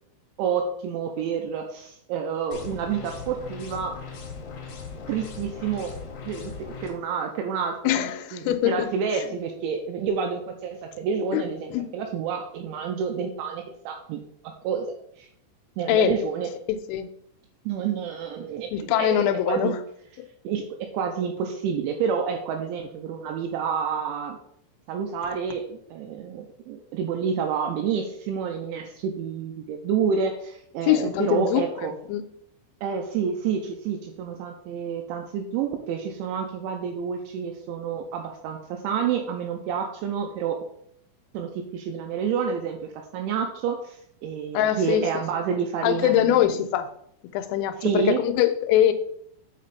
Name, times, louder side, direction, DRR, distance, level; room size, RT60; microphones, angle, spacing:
voice 1, 0.4-4.0 5.1-5.9 6.2-14.9 15.2-15.3 15.8-16.5 17.7-19.7 20.4-20.6 20.9-24.4 24.9-31.9 32.8-40.6 41.3-46.6 47.8-48.2, right 6 dB, 85° right, 4 dB, 2.8 m, -29 dB
sound 1, 2.5-6.9, left 5 dB, 65° left, 2.8 m, -39 dB
voice 2, 7.8-8.9 9.1-9.2 11.3-11.4 11.7-11.9 15.9-16.1 16.7-17.1 18.7-19.7 30.8-31.6 32.1-32.2 44.5-45.0 45.8-46.9 47.3-48.9, left 11 dB, 85° left, 9 dB, 3.2 m, -22 dB
7.3 x 5.1 x 4.1 m, 0.69 s
omnidirectional pair, 5.9 m